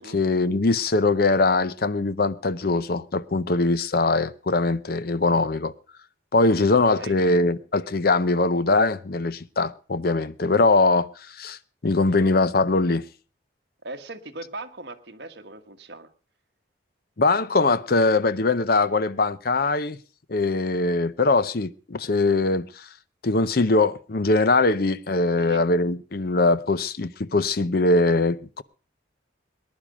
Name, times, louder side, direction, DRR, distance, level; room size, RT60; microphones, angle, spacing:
voice 1, 0.0-5.7 6.3-11.6 11.8-13.0 17.2-20.0 20.3-22.9 23.2-28.6, left 3 dB, 50° left, 0.6 m, -22 dB
voice 2, 6.5-7.2 13.8-16.1 25.4-25.6, right 2 dB, 60° right, 1.4 m, -39 dB
19.5 x 10.5 x 5.0 m
head